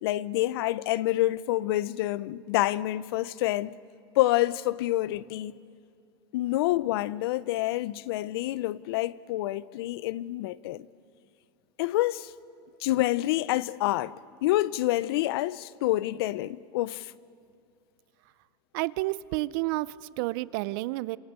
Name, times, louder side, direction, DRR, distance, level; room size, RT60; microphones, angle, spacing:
voice 1, 0.0-3.7 4.2-5.5 6.3-10.9 11.8-12.3 12.8-14.1 14.4-17.1, left 16 dB, 75° left, 0.6 m, -27 dB
voice 2, 18.7-21.2, right 20 dB, 60° right, 0.6 m, -30 dB
27.5 x 25.5 x 8.2 m
supercardioid pair, 150°, 13 cm